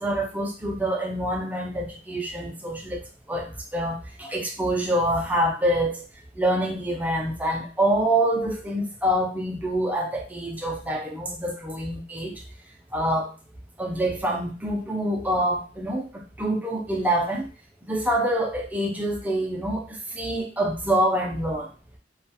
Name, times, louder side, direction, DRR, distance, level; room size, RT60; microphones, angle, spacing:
voice 1, 0.0-3.0 3.3-6.0 6.4-12.3 12.9-13.3 13.8-16.1 16.4-17.5 17.8-21.7, right 1 dB, 10° right, 0 dB, 0.4 m, -26 dB
2.3 x 2.2 x 2.7 m, 0.38 s
head